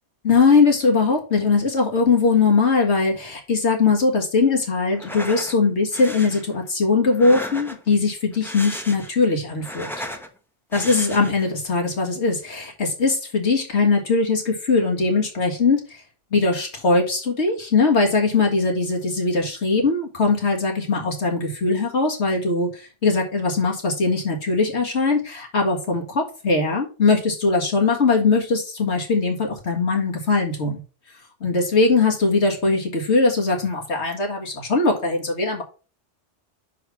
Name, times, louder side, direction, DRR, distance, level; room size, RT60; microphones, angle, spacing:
voice 1, 0.2-9.9 10.7-16.0 16.3-30.8 31.4-35.6, left 4 dB, 70° left, 1 dB, 1.9 m, -20 dB
sound 1, 4.9-5.5 5.9-6.4 7.1-7.9 8.3-9.2 9.5-10.3 10.7-11.5, equal, ahead, 0.9 m, -34 dB
6.0 x 4.9 x 5.8 m, 0.34 s
omnidirectional pair, 1.2 m